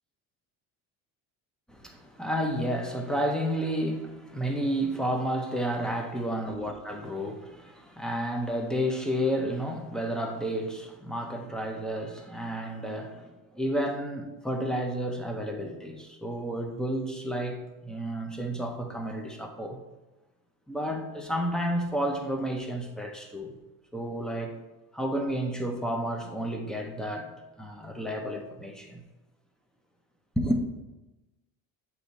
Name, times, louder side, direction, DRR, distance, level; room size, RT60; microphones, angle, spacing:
voice 1, 1.7-19.8 20.7-23.5 23.9-24.6 24.9-27.3 27.6-29.0 30.4-30.6, equal, ahead, 3 dB, 0.5 m, -31 dB
8.3 x 3.1 x 4.0 m, 1.1 s
cardioid pair, 145°, 36 cm